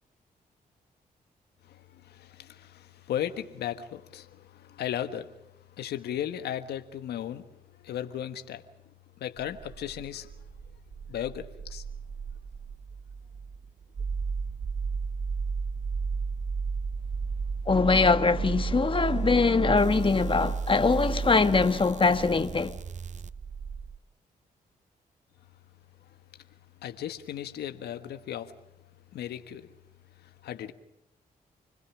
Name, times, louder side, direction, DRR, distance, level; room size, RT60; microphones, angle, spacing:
voice 1, 1.6-5.4 5.8-7.4 7.8-8.6 9.2-10.3 11.1-11.8 26.8-28.6 29.1-29.7 30.2-30.7, left 10 dB, 85° left, 1.6 m, -36 dB
sound 1, 9.4-24.0, right 5 dB, 45° right, 0.9 m, -33 dB
voice 2, 17.7-22.8, left 4 dB, 30° left, 1.6 m, -23 dB
29.0 x 21.0 x 6.3 m
supercardioid pair, 60°, 16 cm